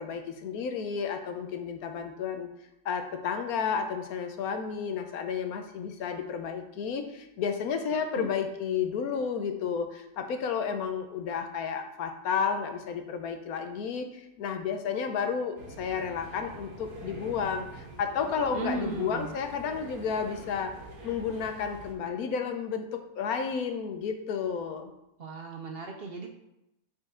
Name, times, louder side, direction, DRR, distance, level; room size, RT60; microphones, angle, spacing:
voice 1, 0.0-2.5 2.8-20.7 21.0-24.9, left 6 dB, 85° left, 6 dB, 1.2 m, -32 dB
voice 2, 7.9-8.3 18.5-19.3 25.2-26.3, right 3 dB, 55° right, 3 dB, 0.7 m, -36 dB
sound 1, 15.6-21.9, right 1 dB, 90° right, 1.8 m, -45 dB
7.6 x 4.6 x 3.6 m, 0.88 s
omnidirectional pair, 1.5 m